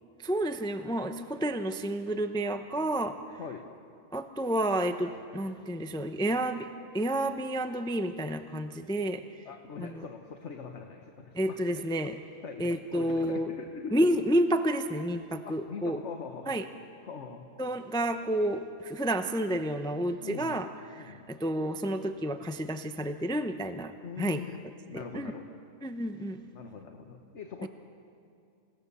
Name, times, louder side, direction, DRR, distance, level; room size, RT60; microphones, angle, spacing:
voice 1, 0.2-3.2 4.1-6.7 6.9-9.2 9.8-10.0 11.3-12.1 12.6-13.5 13.9-16.0 16.5-16.6 17.6-20.7 21.0-23.9 24.2-24.4 24.9-25.3 25.8-26.4, right 1 dB, 5° left, 8 dB, 0.5 m, -30 dB
voice 2, 9.4-11.9 12.4-14.0 15.4-16.6 17.0-17.4 20.2-20.6 21.0-21.3 24.0-24.6 24.9-25.4 26.5-27.7, left 6 dB, 55° left, 4 dB, 1.4 m, -42 dB
28.0 x 17.5 x 6.9 m, 2.5 s
omnidirectional pair, 1.5 m